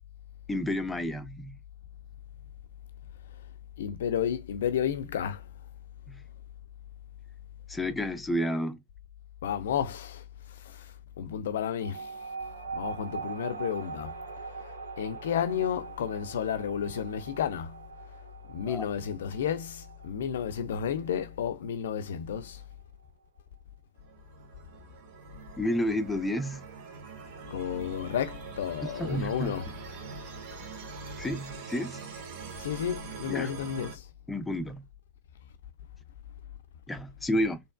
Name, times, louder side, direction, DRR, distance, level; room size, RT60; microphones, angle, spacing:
voice 1, 0.5-1.6 6.1-6.2 7.7-8.8 18.7-18.9 25.6-26.6 29.0-29.6 31.2-32.0 33.3-33.5 34.3-34.8 36.9-37.6, left 1 dB, 5° left, 0.6 m, -31 dB
voice 2, 3.8-5.4 9.4-10.2 10.7-10.9 11.2-12.1 12.8-14.2 15.0-17.8 18.5-22.6 27.5-29.7 32.6-34.0, left 8 dB, 60° left, 0.5 m, -32 dB
sound 1, 11.8-22.7, right 5 dB, 70° right, 1.0 m, -42 dB
sound 2, 24.0-34.0, right 5 dB, 50° right, 1.2 m, -44 dB
4.2 x 3.2 x 2.3 m
figure-of-eight pair, 90°, 0 cm